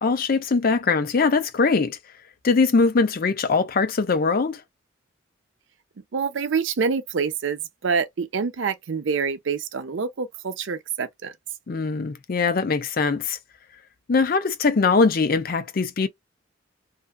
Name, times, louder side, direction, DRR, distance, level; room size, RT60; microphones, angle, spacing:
voice 1, 0.0-2.0 2.4-4.6 11.7-13.4 14.1-16.1, left 4 dB, 50° left, 0.5 m, -21 dB
voice 2, 6.1-11.3, right 5 dB, 70° right, 0.5 m, -26 dB
2.6 x 2.3 x 2.2 m
head